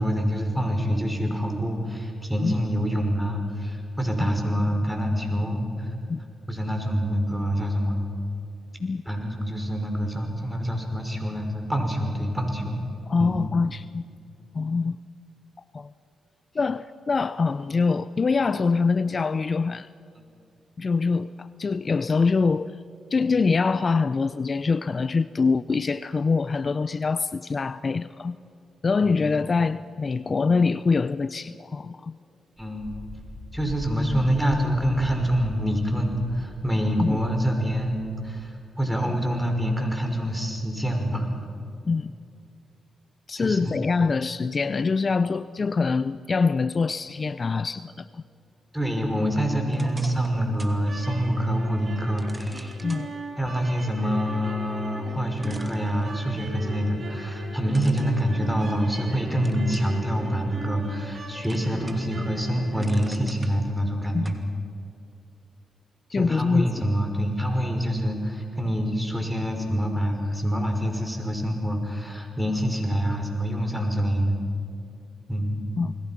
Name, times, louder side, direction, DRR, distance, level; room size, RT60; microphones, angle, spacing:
voice 1, 0.0-5.9 6.5-8.0 9.1-12.8 13.2-13.4 29.0-29.2 30.2-30.3 32.6-32.9 33.5-41.3 43.3-43.8 48.7-52.8 53.4-64.4 66.1-74.4 75.3-75.6, equal, 5° right, 3 dB, 5.7 m, -26 dB
voice 2, 13.1-14.1 14.5-15.0 15.7-15.9 16.5-19.9 20.8-22.8 23.1-28.4 28.8-32.2 37.0-37.2 41.8-42.1 43.3-48.2 52.8-53.1 64.1-64.3 66.1-66.8 75.8-75.9, left 4 dB, 45° left, 15 dB, 0.5 m, -24 dB
Wind, 32.6-38.5, left 1 dB, 15° left, 4.7 m, -41 dB
sound 1, 49.7-50.8 51.2-51.3 52.2-53.1 54.8-54.9 55.4-56.5 57.7-59.0 59.4-60.0 60.5-61.1 61.4-62.2 62.5-63.5 64.2-64.4, right 2 dB, 20° right, 2.7 m, -46 dB
sound 2, 50.8-63.1, right 2 dB, 55° right, 7.1 m, -40 dB
29.5 x 21.0 x 6.0 m, 2.6 s
supercardioid pair, 55°, 0 cm